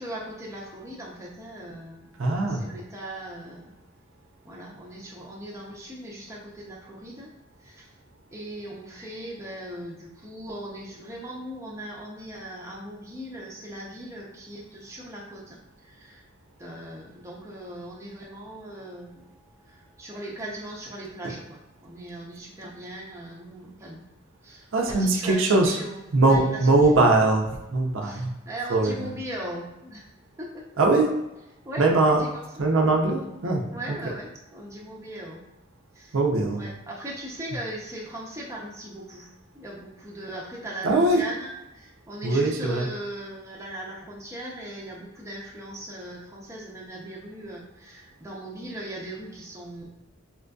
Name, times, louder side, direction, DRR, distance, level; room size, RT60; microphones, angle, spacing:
voice 1, 0.0-2.2 2.5-3.7 4.4-7.3 7.6-8.0 8.3-16.3 16.6-19.3 19.7-24.0 24.4-26.7 28.0-30.1 30.4-30.6 31.6-32.7 33.7-35.4 35.9-36.2 36.5-49.9, right 1 dB, 15° right, -3 dB, 0.5 m, -39 dB
voice 2, 2.2-2.6 24.7-25.8 26.1-28.3 28.7-28.9 30.8-31.1 31.8-32.2 32.6-33.6 36.1-36.6 40.8-41.2 42.2-42.9, right 2 dB, 75° right, 1 dB, 0.5 m, -21 dB
4.3 x 2.5 x 2.2 m, 0.97 s
head